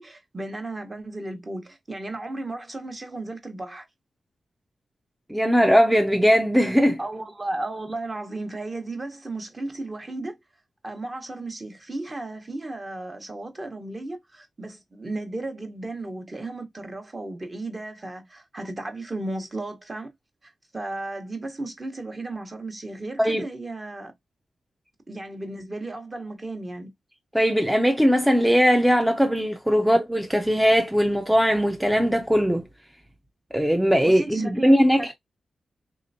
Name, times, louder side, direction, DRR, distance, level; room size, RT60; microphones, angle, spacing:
voice 1, 0.0-3.9 7.0-10.4 10.8-20.1 20.4-24.1 25.1-26.9 34.0-34.7 35.0-35.1, right 2 dB, 30° right, 1.1 m, -34 dB
voice 2, 5.3-7.0 23.2-23.4 27.3-32.7 33.5-35.1, equal, 5° right, 0.5 m, -20 dB
3.3 x 2.9 x 2.6 m
cardioid pair, 65°, 0 cm